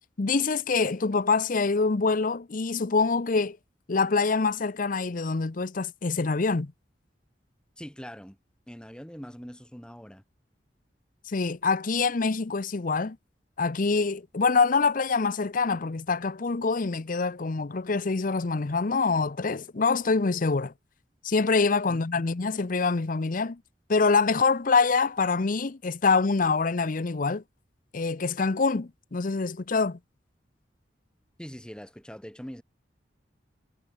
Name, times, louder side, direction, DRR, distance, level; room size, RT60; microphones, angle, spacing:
voice 1, 0.2-3.6 3.9-6.7 11.3-13.2 13.6-20.7 21.2-23.6 23.9-27.4 27.9-30.0, left 4 dB, 50° left, 0.7 m, -25 dB
voice 2, 7.8-8.4 8.7-10.2 21.9-22.3 31.4-32.6, equal, 5° left, 3.8 m, -43 dB
head